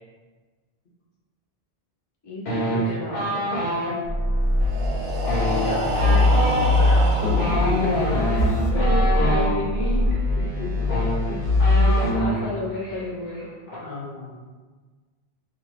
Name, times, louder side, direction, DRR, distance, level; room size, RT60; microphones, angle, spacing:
voice 1, 2.2-3.5 8.1-10.1 11.8-13.5, left 2 dB, 30° left, -4 dB, 0.6 m, -31 dB
sound 1, 2.5-3.9 5.2-9.5 10.5-10.6 10.8-12.5 12.7-13.0 13.3-13.8, equal, 80° left, 1.1 m, -26 dB
sound 2, 4.0-12.1, left 1 dB, 35° right, 0.8 m, -22 dB
Breathing, 4.5-8.4, right 2 dB, 65° right, 0.7 m, -29 dB
voice 2, 5.4-8.0 8.3-8.8 9.2-9.3 10.4-10.9 11.3-11.5 13.8-14.3, left 2 dB, 60° left, -3 dB, 0.8 m, -32 dB
2.7 x 2.2 x 3.1 m, 1.4 s
omnidirectional pair, 1.0 m